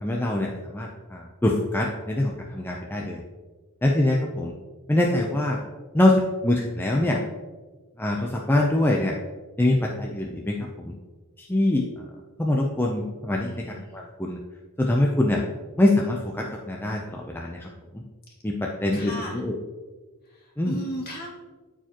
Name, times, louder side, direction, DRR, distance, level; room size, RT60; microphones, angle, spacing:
voice 1, 0.0-3.2 3.8-4.5 4.9-5.6 5.9-7.2 8.0-9.1 9.6-10.9 11.4-12.0 12.4-14.4 14.8-15.4 15.8-18.0 18.4-19.5 20.6-20.8, left 1 dB, 10° left, -1 dB, 0.5 m, -24 dB
voice 2, 13.4-14.0 18.9-19.4 20.2-21.3, equal, 45° left, -3 dB, 2.3 m, -36 dB
13.0 x 4.7 x 2.9 m, 1.3 s
head